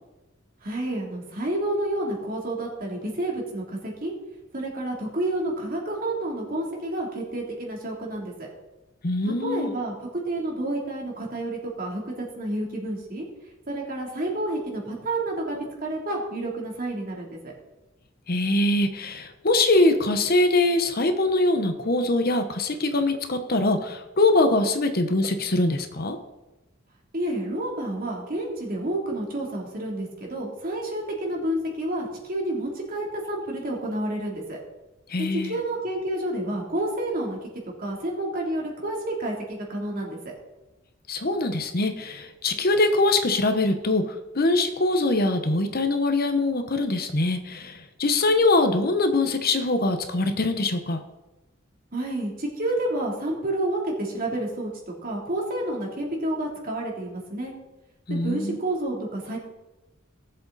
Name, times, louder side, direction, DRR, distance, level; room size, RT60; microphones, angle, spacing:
voice 1, 0.6-4.1 4.5-8.5 9.2-13.2 13.7-17.4 27.1-34.6 35.4-37.4 37.8-40.3 51.9-54.7 55.0-57.5 58.1-59.4, right 1 dB, 45° right, -1 dB, 3.1 m, -29 dB
voice 2, 9.0-9.7 18.3-26.2 35.1-35.6 41.1-51.0 58.1-58.6, left 2 dB, 50° left, 7 dB, 1.1 m, -23 dB
18.5 x 7.7 x 4.2 m, 1.0 s
head